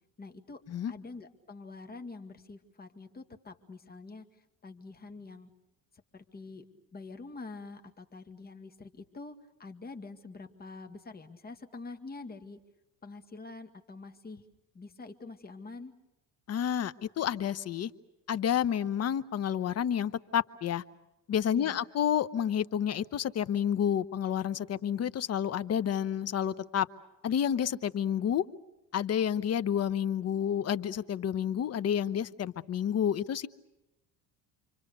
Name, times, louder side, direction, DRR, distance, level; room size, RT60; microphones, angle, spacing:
voice 1, 0.2-0.6 0.9-5.5 6.1-9.3 9.6-12.6 13.0-14.4 14.7-15.9 21.5-21.8, left 3 dB, 25° left, 7 dB, 2.1 m, -46 dB
voice 2, 16.5-17.9 18.3-20.8 21.3-26.9 27.2-28.4 28.9-33.5, left 9 dB, 40° left, 15 dB, 1.0 m, -30 dB
29.0 x 24.5 x 6.8 m, 0.93 s
cardioid pair, 115°, 39 cm